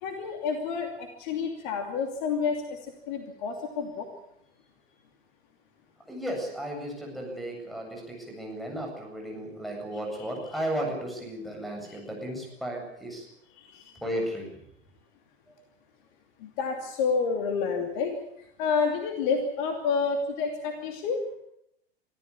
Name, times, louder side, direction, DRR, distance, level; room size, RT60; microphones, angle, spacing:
voice 1, 0.0-4.1 11.9-12.0 13.6-14.0 16.4-18.2 18.6-21.2, left 5 dB, 45° left, 5 dB, 2.8 m, -29 dB
voice 2, 6.1-13.3 13.9-14.5, right 1 dB, ahead, 1 dB, 8.0 m, -34 dB
25.0 x 14.5 x 8.6 m, 0.75 s
figure-of-eight pair, 85°, 32 cm